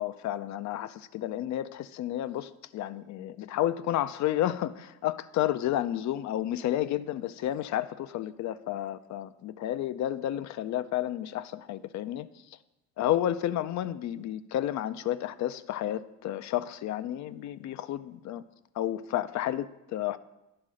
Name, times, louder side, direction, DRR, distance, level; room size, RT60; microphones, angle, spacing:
voice 1, 0.0-12.3 13.0-18.4 18.8-20.2, left 12 dB, 65° left, 15 dB, 0.4 m, -31 dB
9.6 x 3.7 x 6.3 m, 0.94 s
cardioid pair, 90°, 30 cm